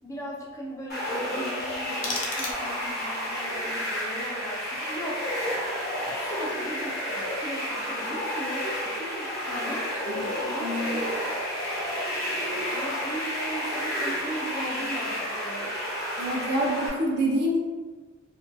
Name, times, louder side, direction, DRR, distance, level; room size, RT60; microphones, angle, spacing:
voice 1, 0.0-5.3 6.0-11.1 12.7-15.7, equal, 15° left, -4 dB, 0.3 m, -37 dB
sound 1, 0.9-16.9, equal, 50° left, 0.9 m, -31 dB
sound 2, 1.6-3.0, left 3 dB, 75° left, 0.5 m, -35 dB
voice 2, 10.6-11.0 16.2-17.6, equal, 55° right, -2 dB, 0.5 m, -26 dB
2.5 x 2.2 x 2.5 m, 1.3 s
head